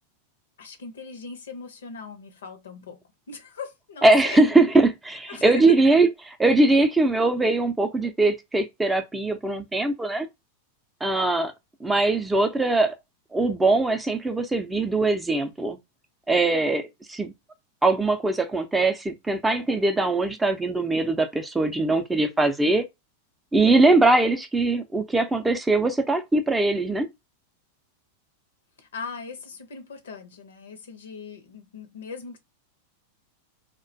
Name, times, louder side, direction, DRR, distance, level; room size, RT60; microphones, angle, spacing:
voice 1, 0.6-3.0 3.3-4.4 5.3-5.8 28.8-32.4, left 5 dB, 85° left, 0.6 m, -39 dB
voice 2, 4.0-10.3 11.0-11.5 11.8-13.0 13.3-15.8 16.3-16.8 17.1-17.3 17.8-22.8 23.5-27.1, right 2 dB, 10° right, 0.4 m, -21 dB
2.4 x 2.2 x 2.6 m
hypercardioid pair, 110°, 0 cm